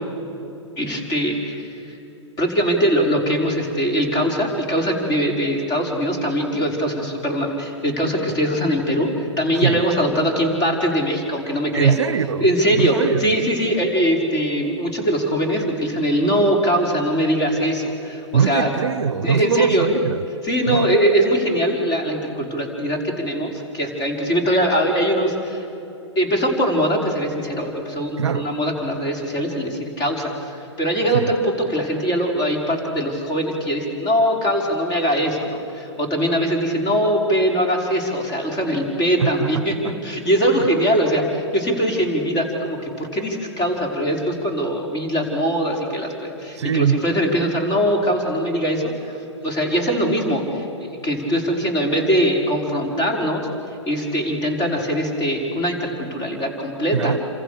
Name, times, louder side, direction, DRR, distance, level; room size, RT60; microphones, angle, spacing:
voice 1, 0.8-2.0 2.4-11.9 12.4-18.7 19.2-19.9 20.4-25.7 26.2-53.5 53.9-57.2, equal, 25° left, 5.3 m, -22 dB
voice 2, 11.7-13.3 18.3-20.2 20.7-20.9 28.2-28.5 31.1-31.3 39.2-39.9 40.5-40.6 46.6-47.0 56.9-57.2, right 7 dB, 65° right, 0.8 m, -22 dB
28.5 x 26.5 x 6.8 m
figure-of-eight pair, 110°, 16 cm